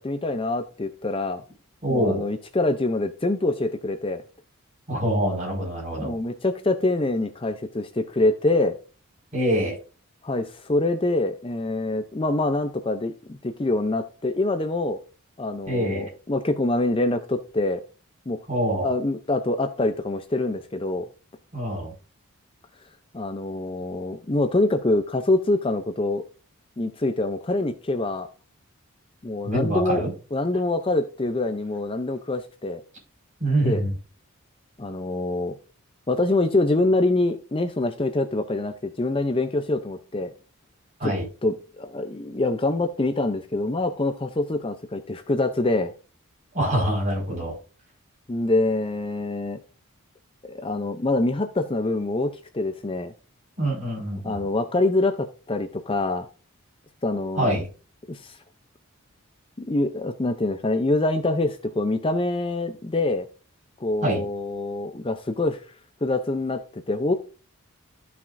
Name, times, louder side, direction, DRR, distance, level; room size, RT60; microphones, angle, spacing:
voice 1, 0.0-1.4 1.9-4.2 6.0-8.8 10.2-15.0 15.4-17.8 18.3-18.4 18.8-21.1 23.1-26.2 26.8-28.3 29.2-30.0 30.3-32.8 33.6-33.8 34.8-35.6 36.1-40.3 41.0-41.1 41.4-45.9 48.3-49.6 50.5-53.1 54.2-56.3 57.0-57.6 58.1-58.4 59.6-63.3 63.8-65.6 66.0-67.1, left 2 dB, 25° left, 8 dB, 0.5 m, -25 dB
voice 2, 1.8-2.2 4.9-6.1 9.3-9.7 15.7-16.1 18.5-18.9 21.5-21.9 29.4-30.1 33.4-33.9 41.0-41.2 46.5-47.5 53.6-54.4 57.4-57.7 64.0-64.2, right 1 dB, 35° right, -2 dB, 4.9 m, -25 dB
13.5 x 5.9 x 2.6 m, 0.35 s
head